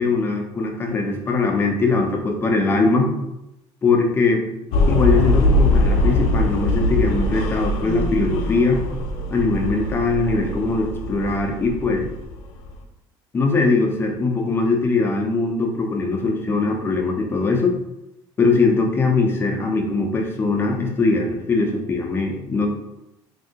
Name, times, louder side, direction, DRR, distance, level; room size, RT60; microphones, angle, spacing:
voice 1, 0.0-3.1 3.8-4.4 4.9-8.8 9.3-12.1 13.3-17.8 18.4-22.7, left 3 dB, 25° left, 2 dB, 0.6 m, -21 dB
sound 1, 4.7-12.8, left 1 dB, 90° left, 0.5 m, -22 dB
2.7 x 2.6 x 3.6 m, 0.89 s
cardioid pair, 130°, 10 cm